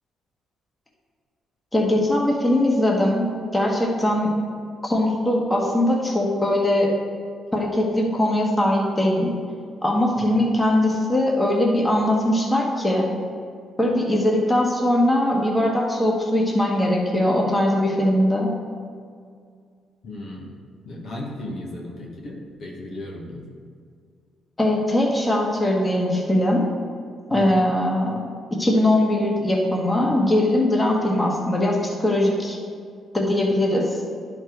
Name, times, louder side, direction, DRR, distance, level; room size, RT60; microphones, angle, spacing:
voice 1, 1.7-3.3 3.5-4.3 4.8-6.9 7.5-9.3 9.8-13.1 13.8-18.5 24.6-26.6 27.3-28.2 28.6-32.6 33.1-34.0, left 1 dB, 15° left, -2 dB, 1.4 m, -21 dB
voice 2, 10.2-10.5 20.0-20.5 20.8-23.4 27.3-27.6, left 1 dB, 60° left, -2 dB, 1.5 m, -35 dB
11.0 x 4.5 x 4.6 m, 2.1 s
cardioid pair, 90°, 0 cm